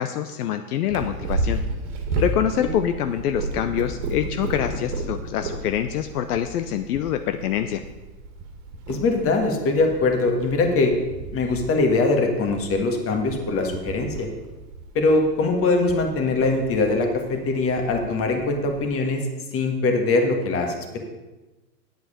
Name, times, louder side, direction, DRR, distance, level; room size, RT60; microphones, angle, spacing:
voice 1, 0.0-1.6 2.2-7.8, left 10 dB, 70° left, 8 dB, 0.7 m, -25 dB
Purr, 0.9-18.8, right 2 dB, 45° right, 1.8 m, -33 dB
voice 2, 8.9-10.9 11.3-14.3 14.9-19.3 19.5-21.0, left 3 dB, 25° left, 4 dB, 1.7 m, -22 dB
9.1 x 7.9 x 5.0 m, 1.1 s
hypercardioid pair, 120°, 48 cm